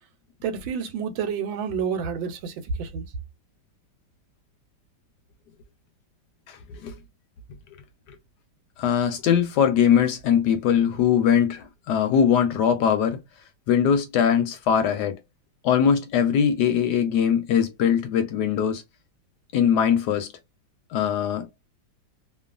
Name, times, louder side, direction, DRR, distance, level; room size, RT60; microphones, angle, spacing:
voice 1, 0.4-2.5 2.8-3.0, right 7 dB, 85° right, 1.4 m, -29 dB
voice 2, 6.5-6.9 8.8-13.2 13.7-15.2 15.6-18.8 19.5-20.3 20.9-21.5, left 8 dB, 70° left, 1.0 m, -21 dB
3.0 x 2.2 x 2.4 m
omnidirectional pair, 2.1 m